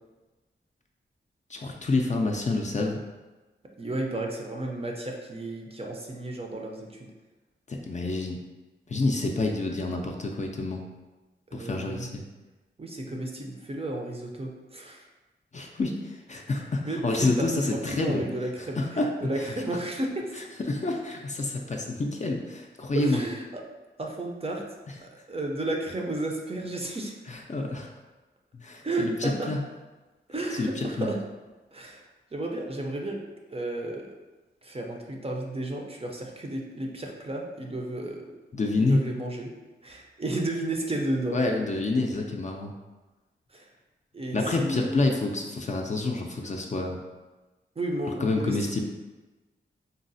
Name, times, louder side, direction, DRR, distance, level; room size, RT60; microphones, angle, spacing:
voice 1, 1.5-3.0 7.7-8.4 8.9-10.8 11.5-12.2 15.5-18.2 18.8-19.1 19.4-19.5 20.3-23.2 27.3-27.9 28.5-29.6 30.5-31.1 38.5-39.0 41.3-42.7 44.3-47.0 48.2-48.8, left 2 dB, 35° left, 1 dB, 0.4 m, -28 dB
voice 2, 3.8-7.1 11.5-12.1 12.8-15.1 16.8-20.5 22.9-23.6 24.0-24.6 25.0-27.1 28.8-29.5 30.3-31.2 31.7-32.0 32.3-33.2 33.5-34.1 34.6-38.3 38.7-39.5 39.8-41.4 43.5-43.7 44.1-45.1 47.8-48.8, right 1 dB, 30° right, 0 dB, 0.5 m, -32 dB
3.9 x 2.0 x 2.6 m, 1.2 s
cardioid pair, 65°, 21 cm